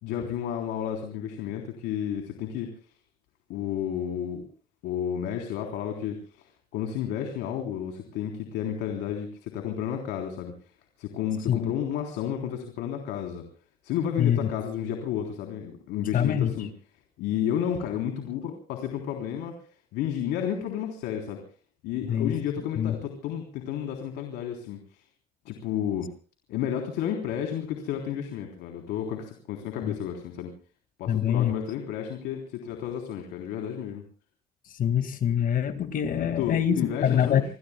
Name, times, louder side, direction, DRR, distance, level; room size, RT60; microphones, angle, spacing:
voice 1, 0.0-2.8 3.5-4.4 4.8-10.5 11.0-13.4 13.8-16.7 17.2-19.5 19.9-21.4 21.8-25.0 25.5-26.1 26.5-30.5 31.0-34.0 36.2-37.4, left 9 dB, 90° left, 3 dB, 3.6 m, -31 dB
voice 2, 14.2-14.5 16.1-16.7 22.1-22.4 22.8-22.9 29.8-29.9 31.1-31.5 34.7-37.4, left 9 dB, 55° left, 10 dB, 2.0 m, -25 dB
28.0 x 21.5 x 2.3 m, 0.39 s
cardioid pair, 110°, 17 cm